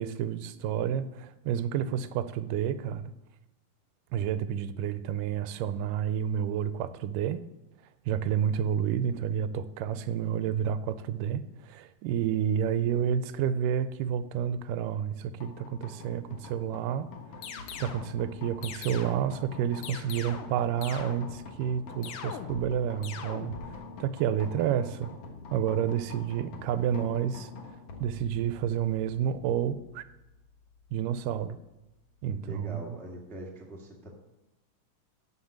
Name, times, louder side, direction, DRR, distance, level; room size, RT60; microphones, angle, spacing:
voice 1, 0.0-3.1 4.1-7.4 8.1-17.1 17.8-23.6 24.0-25.1 25.5-27.5 28.0-30.0 30.9-31.6 32.2-33.0, right 9 dB, 85° right, 13 dB, 2.2 m, -30 dB
sound 1, 15.4-32.6, left 4 dB, 55° left, 1.9 m, -47 dB
sound 2, 17.4-18.1 18.6-19.3 19.8-20.6 20.8-21.5 22.0-22.7 23.0-23.7, left 7 dB, 85° left, 2.6 m, -41 dB
voice 2, 32.4-34.1, equal, ahead, -2 dB, 0.9 m, -42 dB
12.0 x 5.6 x 7.5 m, 0.96 s
omnidirectional pair, 3.8 m